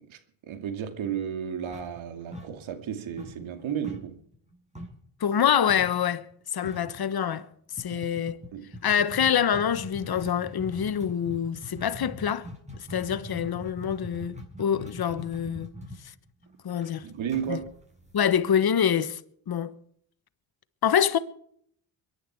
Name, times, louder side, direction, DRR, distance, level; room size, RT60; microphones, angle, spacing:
voice 1, 0.0-4.2 7.9-8.0 8.5-8.7 17.0-17.7, right 8 dB, 75° right, 2.5 m, -33 dB
sound 1, 1.7-2.9 3.2-5.1 5.7-6.0 6.3-6.4 6.6-7.0 7.8-18.6, left 1 dB, 15° right, 7.1 m, -42 dB
voice 2, 5.2-7.5 7.8-8.4 8.8-12.5 12.9-15.7 16.6-17.1 17.5-17.6 18.1-19.2 19.5-19.7 20.8-21.2, left 8 dB, 50° left, 1.4 m, -26 dB
23.0 x 11.0 x 4.7 m
supercardioid pair, 65°, 48 cm